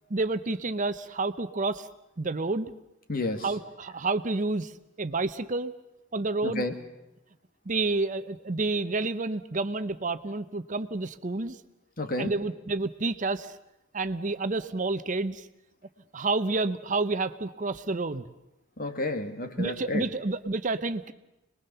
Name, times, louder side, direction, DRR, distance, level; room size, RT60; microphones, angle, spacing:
voice 1, 0.1-1.9 2.2-2.7 3.4-4.7 5.0-5.7 6.1-6.7 7.7-11.6 12.2-13.5 13.9-15.5 16.1-18.2 19.6-21.1, right 3 dB, 40° right, 11 dB, 0.8 m, -29 dB
voice 2, 3.1-3.5 6.4-6.7 12.0-12.3 18.8-20.1, left 2 dB, 45° left, 7 dB, 2.1 m, -31 dB
27.0 x 21.0 x 6.9 m, 0.93 s
head